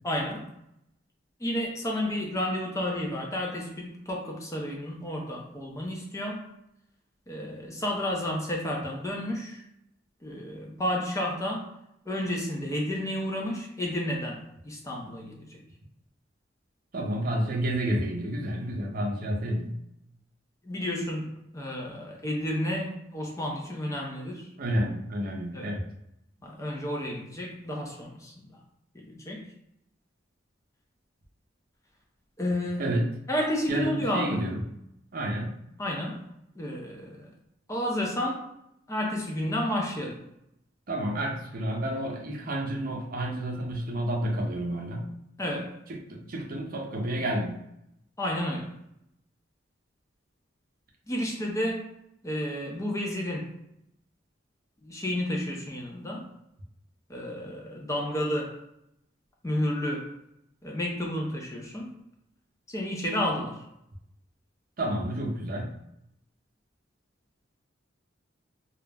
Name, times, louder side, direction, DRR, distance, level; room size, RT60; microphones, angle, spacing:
voice 1, 0.0-0.5 1.4-6.4 7.3-9.6 10.2-11.7 12.1-15.6 20.6-21.3 21.5-24.5 25.5-25.7 26.4-28.3 28.9-29.5 32.4-32.9 33.3-34.4 35.8-36.2 36.6-37.3 37.7-38.4 38.9-40.2 45.4-45.7 48.2-48.7 51.1-51.8 52.2-53.5 54.8-56.2 57.1-58.6 59.4-60.1 60.6-61.9 62.7-63.6, left 1 dB, 15° left, -1 dB, 0.4 m, -31 dB
voice 2, 16.9-19.8 24.6-25.8 32.8-33.2 33.7-34.6 35.1-35.6 40.9-45.1 45.9-47.6 64.8-65.7, right 1 dB, 50° right, 0 dB, 0.5 m, -30 dB
2.3 x 2.0 x 3.3 m, 0.79 s
head